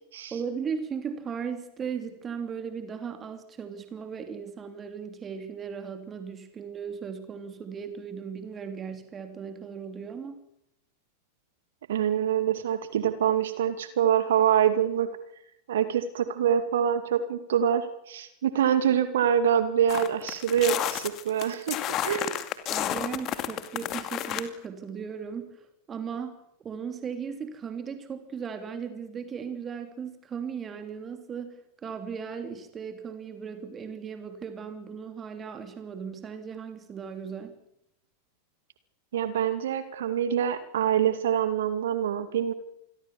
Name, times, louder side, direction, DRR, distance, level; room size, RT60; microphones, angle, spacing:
voice 1, 0.3-10.4 22.7-37.5, right 6 dB, 20° right, 7 dB, 3.0 m, -37 dB
voice 2, 11.9-15.1 15.7-21.8 22.0-22.4 39.1-42.5, right 9 dB, 60° right, 11 dB, 2.3 m, -25 dB
sound 1, 19.9-24.4, left 12 dB, 35° left, 2.3 m, -31 dB
27.5 x 22.0 x 7.2 m, 0.82 s
figure-of-eight pair, 90°, 0 cm